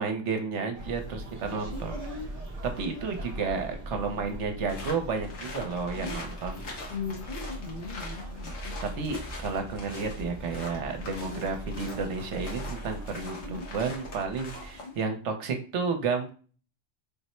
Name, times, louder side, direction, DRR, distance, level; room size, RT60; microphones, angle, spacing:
voice 1, 0.0-2.0 2.8-6.6 8.8-16.3, right 4 dB, 70° right, 5 dB, 1.0 m, -32 dB
sound 1, 0.7-14.8, right 1 dB, 45° right, 0.5 m, -41 dB
voice 2, 1.7-2.3 5.9-6.2 6.9-8.8 11.2-11.5 13.4-13.7 14.7-14.9, left 5 dB, 45° left, 0 dB, 0.8 m, -39 dB
sound 2, 4.7-15.0, left 2 dB, 80° left, 1.4 m, -43 dB
3.6 x 2.0 x 4.2 m, 0.40 s
omnidirectional pair, 1.3 m